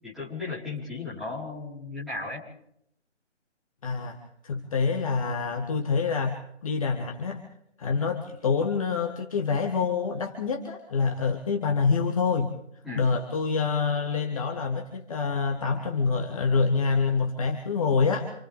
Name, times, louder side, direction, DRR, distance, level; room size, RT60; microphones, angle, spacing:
voice 1, 0.0-2.4 12.8-13.1, left 3 dB, ahead, -11 dB, 4.8 m, -35 dB
voice 2, 3.8-4.2 4.4-7.4 7.8-12.5 12.9-18.3, left 5 dB, 30° left, 2 dB, 1.8 m, -26 dB
29.0 x 28.0 x 3.7 m, 0.74 s
figure-of-eight pair, 150°, 36 cm